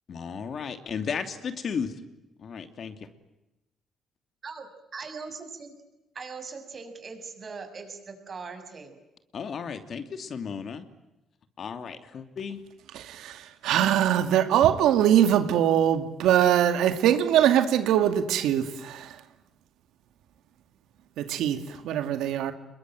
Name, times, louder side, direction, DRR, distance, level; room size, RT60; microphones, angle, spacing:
voice 1, 0.1-1.9 2.4-3.1 9.3-10.9 11.6-12.6, left 6 dB, 55° left, 2.9 m, -34 dB
voice 2, 4.4-5.7 6.1-9.0, right 4 dB, 40° right, 6.8 m, -40 dB
voice 3, 12.9-19.1 21.2-22.5, right 10 dB, 85° right, 2.2 m, -22 dB
27.5 x 22.5 x 9.2 m
cardioid pair, 90°, 0 cm